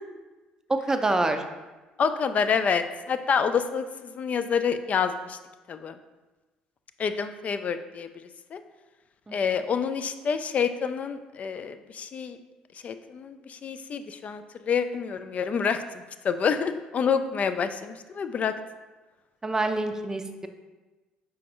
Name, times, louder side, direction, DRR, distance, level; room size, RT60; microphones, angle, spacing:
voice 1, 0.7-1.4 9.3-9.6 19.4-20.5, right 2 dB, 15° right, 7 dB, 0.5 m, -27 dB
voice 2, 2.0-5.4 5.7-6.0 7.0-8.1 8.5-8.6 9.3-12.4 12.8-15.8 16.2-18.5, left 6 dB, 45° left, 10 dB, 0.3 m, -27 dB
5.1 x 3.6 x 2.9 m, 1.2 s
hypercardioid pair, 65°, 3 cm